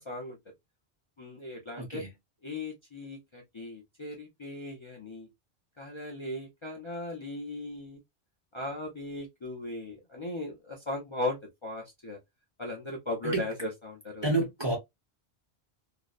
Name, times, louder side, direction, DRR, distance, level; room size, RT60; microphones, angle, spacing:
voice 1, 0.1-0.4 1.2-2.0 2.4-5.3 5.8-8.0 8.5-12.2 12.6-14.3, left 2 dB, 35° left, 0.5 m, -37 dB
voice 2, 1.8-2.1 13.3-13.4 14.2-14.7, right 2 dB, 30° right, 0.6 m, -28 dB
2.6 x 2.1 x 2.3 m
omnidirectional pair, 1.1 m